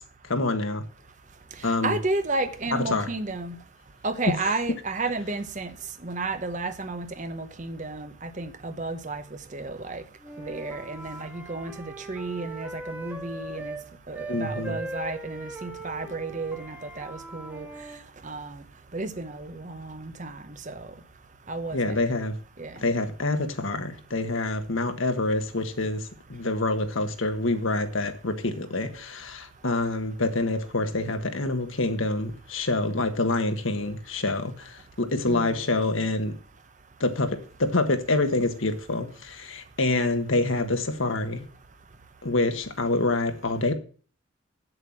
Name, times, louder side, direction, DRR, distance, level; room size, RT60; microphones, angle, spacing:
voice 1, 0.3-0.8 1.6-2.0 2.9-3.1 14.3-14.8 21.7-22.3 22.8-36.3 37.0-41.4 42.2-43.7, left 2 dB, 70° left, 1.4 m, -26 dB
voice 2, 1.8-3.6 4.0-5.7 6.0-9.2 9.5-10.0 10.4-11.7 12.1-13.8 14.1-17.7 18.2-18.6 18.9-20.9 21.5-22.0 22.6-22.7 35.2-35.6, right 3 dB, 35° right, 0.9 m, -32 dB
Wind instrument woodwind instrument, 10.2-13.9 14.1-18.0, right 2 dB, 5° right, 1.7 m, -40 dB
8.1 x 7.8 x 7.2 m
head